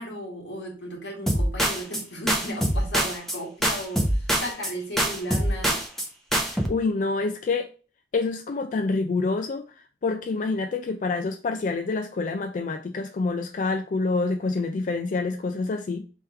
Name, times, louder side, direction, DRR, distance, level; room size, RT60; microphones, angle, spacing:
voice 1, 0.0-5.8, equal, 85° left, -2 dB, 1.9 m, -35 dB
sound 1, 1.3-2.0 2.3-3.4 3.6-4.7 5.0-6.1 6.3-6.7, right 1 dB, ahead, 0.6 m, -24 dB
voice 2, 6.4-7.7 8.1-9.6 10.0-16.0, left 3 dB, 45° left, 5 dB, 0.3 m, -27 dB
3.5 x 3.1 x 4.3 m, 0.36 s
head